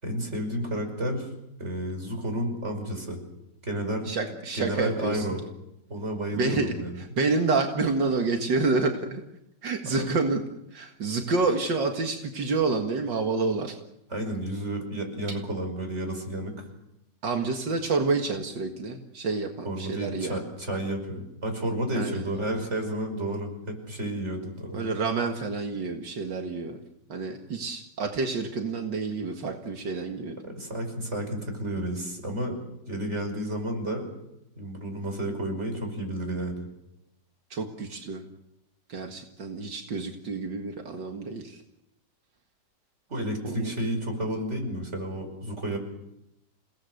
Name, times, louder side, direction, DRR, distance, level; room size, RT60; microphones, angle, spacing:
voice 1, 0.0-1.3 1.6-3.2 3.6-4.1 4.5-5.4 5.9-7.0 9.9-10.1 14.1-16.7 19.6-24.9 30.4-32.5 32.9-34.1 34.6-36.7 43.1-45.8, right 1 dB, 40° right, 5 dB, 5.9 m, -31 dB
voice 2, 4.1-5.3 6.4-9.2 9.6-10.4 10.7-13.8 17.2-20.4 21.9-22.3 24.7-26.8 27.1-30.4 37.5-38.2 38.9-41.6 43.4-43.7, right 3 dB, 80° right, 3 dB, 2.6 m, -28 dB
29.0 x 18.5 x 8.1 m, 0.87 s
omnidirectional pair, 1.9 m